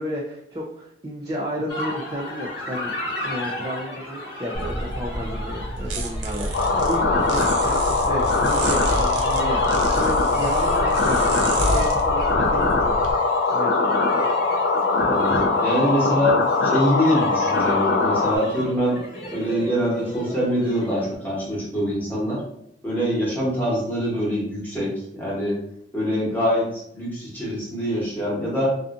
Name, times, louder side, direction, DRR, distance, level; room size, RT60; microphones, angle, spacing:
voice 1, 0.0-12.9 13.5-14.3, equal, 20° right, -3 dB, 0.3 m, -32 dB
sound 1, 1.7-21.1, left 1 dB, 65° left, 0.9 m, -34 dB
sound 2, 4.5-13.1, right 1 dB, 85° right, 0.5 m, -29 dB
sound 3, 6.5-18.4, left 3 dB, 80° left, 0.4 m, -21 dB
voice 2, 15.0-19.0 19.3-22.4 22.8-25.6 25.9-28.7, equal, 10° left, -7 dB, 1.0 m, -24 dB
2.6 x 2.4 x 2.4 m, 0.75 s
head